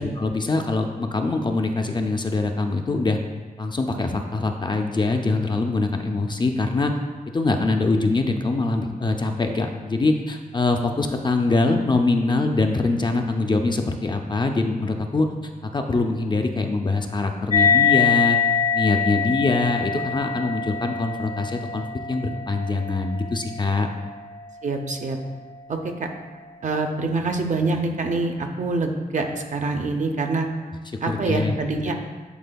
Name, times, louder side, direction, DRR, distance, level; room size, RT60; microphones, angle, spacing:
voice 1, 0.0-3.2 3.6-6.9 7.3-15.3 15.7-18.4 18.7-23.9 31.1-31.5, left 3 dB, 30° left, 4 dB, 0.4 m, -23 dB
sound 1, 17.5-24.4, left 6 dB, 45° left, 0.8 m, -24 dB
voice 2, 24.6-25.2 25.7-26.1 26.6-30.5 31.0-31.9, right 3 dB, 55° right, 4 dB, 0.5 m, -25 dB
10.0 x 4.2 x 2.2 m, 1.4 s
wide cardioid pair, 155°, 15 cm